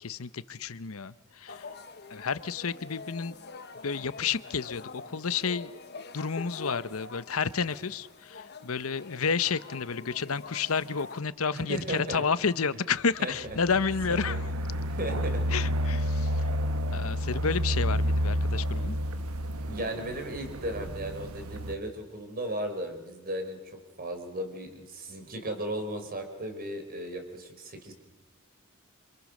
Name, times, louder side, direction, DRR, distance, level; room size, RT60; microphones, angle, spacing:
voice 1, 0.0-1.6 2.1-3.3 3.8-5.7 6.1-14.4 15.5-16.4 16.9-19.0, left 5 dB, 75° left, 15 dB, 0.9 m, -30 dB
sound 1, 1.5-11.2, left 4 dB, 50° left, 1.3 m, -45 dB
voice 2, 11.5-12.2 13.2-13.3 14.1-14.4 14.9-15.4 19.6-23.6 24.0-27.9, right 1 dB, 40° right, 5 dB, 4.4 m, -35 dB
sound 2, 13.4-21.8, equal, 85° right, 1.2 m, -30 dB
28.0 x 26.5 x 6.6 m, 1.2 s
head